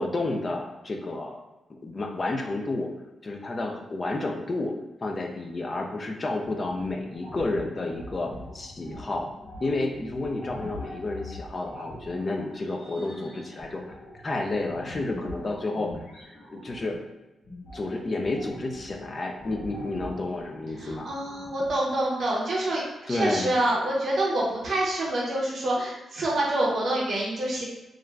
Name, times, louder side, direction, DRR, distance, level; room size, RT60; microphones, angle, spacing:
voice 1, 0.0-1.4 1.8-2.9 3.2-4.7 5.0-9.3 9.6-13.8 14.2-16.0 16.5-17.0 17.7-21.1 23.1-23.5, left 2 dB, 30° left, 2 dB, 0.3 m, -30 dB
sound 1, 6.4-17.0 17.4-21.8, left 1 dB, 80° left, 1.2 m, -43 dB
voice 2, 20.8-27.6, right 1 dB, 50° right, -5 dB, 0.6 m, -27 dB
3.2 x 2.4 x 2.2 m, 1.0 s
wide cardioid pair, 175°, 0 cm